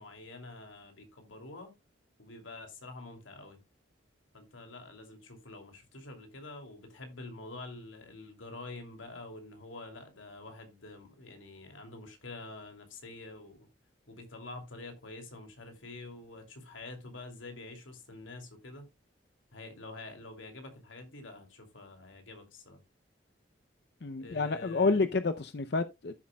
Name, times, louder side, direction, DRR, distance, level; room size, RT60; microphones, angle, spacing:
voice 1, 0.0-1.7 2.2-3.6 4.3-13.6 14.1-18.9 19.5-22.8 24.2-25.0, left 2 dB, 90° left, 2.7 m, -47 dB
voice 2, 24.0-26.1, left 3 dB, 55° left, 0.6 m, -29 dB
13.0 x 7.4 x 2.2 m
head